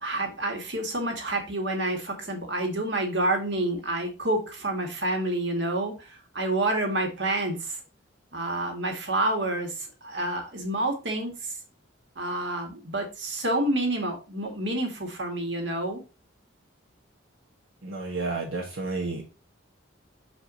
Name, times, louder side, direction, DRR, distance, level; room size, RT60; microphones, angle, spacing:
voice 1, 0.0-7.8 8.3-11.6 12.2-16.0, right 1 dB, 60° right, 3 dB, 2.0 m, -28 dB
voice 2, 17.8-19.2, right 3 dB, 80° right, -1 dB, 1.4 m, -31 dB
6.6 x 4.8 x 4.0 m, 0.30 s
head